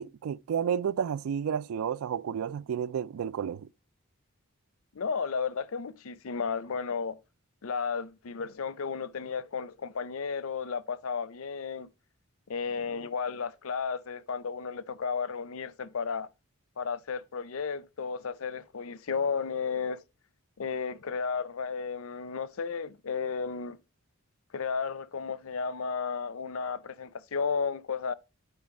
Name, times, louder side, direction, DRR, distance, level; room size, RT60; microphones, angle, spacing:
voice 1, 0.0-3.7, right 8 dB, 80° right, 0.3 m, -31 dB
voice 2, 4.9-7.2 7.6-11.9 12.5-16.3 16.8-20.0 20.6-23.8 24.5-28.1, left 5 dB, 75° left, 0.6 m, -33 dB
9.7 x 4.2 x 5.2 m
head